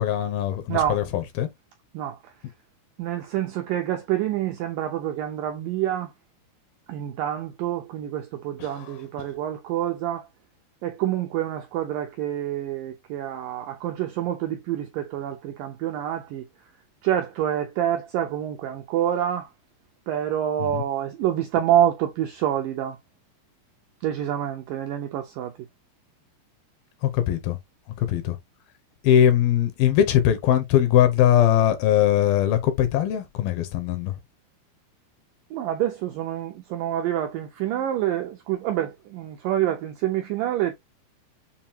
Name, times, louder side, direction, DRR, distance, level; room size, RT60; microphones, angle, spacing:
voice 1, 0.0-1.5 20.7-20.8 27.3-27.6 28.1-28.4 29.0-34.1, left 11 dB, 75° left, 2.5 m, -20 dB
voice 2, 0.7-1.0 1.9-2.2 3.0-6.1 6.9-10.3 10.8-16.5 17.0-19.5 20.1-23.0 24.0-25.5 35.5-40.7, right 11 dB, 80° right, 1.9 m, -27 dB
7.1 x 2.7 x 2.8 m
omnidirectional pair, 4.6 m